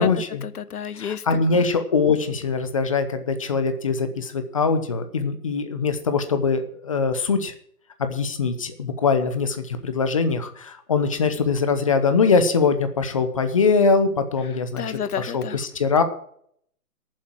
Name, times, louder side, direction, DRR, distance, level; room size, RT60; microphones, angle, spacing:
voice 1, 0.0-0.5 1.0-7.5 8.0-16.0, left 4 dB, 20° left, 9 dB, 0.8 m, -22 dB
voice 2, 0.6-1.2 14.8-15.6, left 7 dB, 65° left, 15 dB, 1.1 m, -29 dB
13.5 x 7.4 x 7.3 m, 0.65 s
hypercardioid pair, 160°, 47 cm